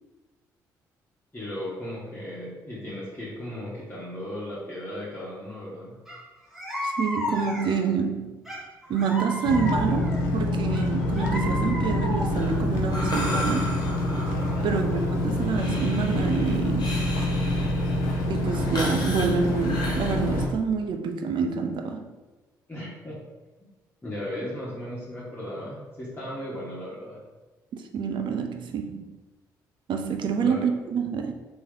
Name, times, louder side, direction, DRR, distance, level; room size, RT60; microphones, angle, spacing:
voice 1, 1.3-6.0 14.5-14.9 22.7-23.2 24.0-27.2 30.4-30.7, left 1 dB, 20° left, -8 dB, 1.3 m, -36 dB
sound 1, 6.1-6.2 6.5-7.9 8.5-10.2 10.7-12.5, equal, ahead, 1.2 m, -33 dB
voice 2, 6.8-8.4 8.9-13.9 14.6-17.0 18.3-22.1 27.7-29.2 29.9-31.3, right 6 dB, 60° right, 5 dB, 0.5 m, -27 dB
sound 2, 9.4-20.5, left 1 dB, 85° left, 0.5 m, -26 dB
Breathing, 12.3-20.1, left 1 dB, 45° left, 1.3 m, -36 dB
3.0 x 2.9 x 3.7 m, 1.2 s
hypercardioid pair, 50°, 9 cm